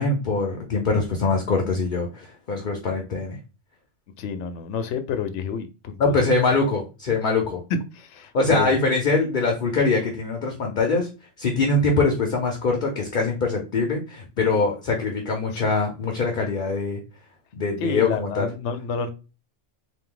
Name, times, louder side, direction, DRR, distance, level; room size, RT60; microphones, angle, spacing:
voice 1, 0.0-3.4 6.0-7.6 8.3-11.1 11.4-17.0 17.5-18.5, left 3 dB, 50° left, 2 dB, 0.8 m, -23 dB
voice 2, 4.2-6.3 7.7-8.7 14.4-14.7 15.5-15.6 17.8-19.1, left 6 dB, 90° left, 10 dB, 0.9 m, -29 dB
3.7 x 2.6 x 3.8 m, 0.31 s
omnidirectional pair, 1.2 m